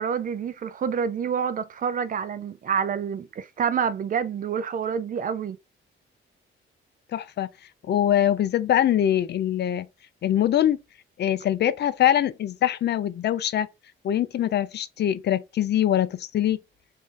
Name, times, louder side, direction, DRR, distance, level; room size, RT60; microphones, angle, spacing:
voice 1, 0.0-5.6, right 7 dB, 40° right, 0.4 m, -27 dB
voice 2, 7.1-7.5 7.9-9.9 10.2-10.8 11.2-13.7 14.0-16.6, left 11 dB, 55° left, 0.4 m, -23 dB
3.6 x 2.6 x 3.7 m
cardioid pair, 135°, 21 cm